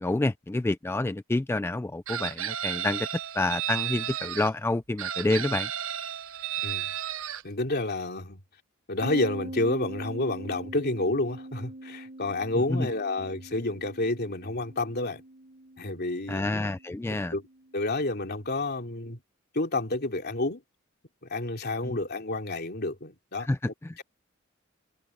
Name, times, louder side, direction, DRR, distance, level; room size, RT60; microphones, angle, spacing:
voice 1, 0.0-3.1 3.4-5.7 12.7-12.9 16.3-17.3 21.8-22.0 23.4-23.6 23.8-24.0, left 2 dB, 10° left, 0.3 m, -28 dB
Chicken rooster, 2.1-4.5 5.0-7.4, right 10 dB, 75° right, 0.9 m, -33 dB
voice 2, 6.6-6.9 7.4-8.4 8.9-15.2 15.8-16.5 17.3-17.5 17.7-19.2 19.5-20.6 21.3-24.0, left 2 dB, 50° left, 3.1 m, -30 dB
sound 1, 9.0-18.5, right 1 dB, 35° right, 0.9 m, -43 dB
head